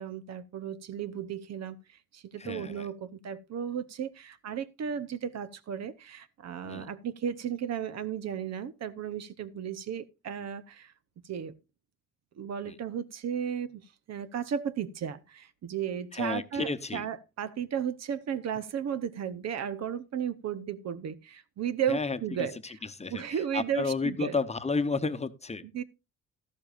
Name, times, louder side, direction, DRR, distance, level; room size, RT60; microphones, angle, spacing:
voice 1, 0.0-10.9 11.2-11.5 12.4-22.8 23.1-24.4 25.7-25.8, right 8 dB, 60° right, 0.9 m, -34 dB
voice 2, 2.4-2.9 6.6-6.9 12.7-12.8 16.1-17.1 21.9-25.6, left 4 dB, 20° left, 0.9 m, -32 dB
13.0 x 12.0 x 2.5 m
cardioid pair, 90°, 30 cm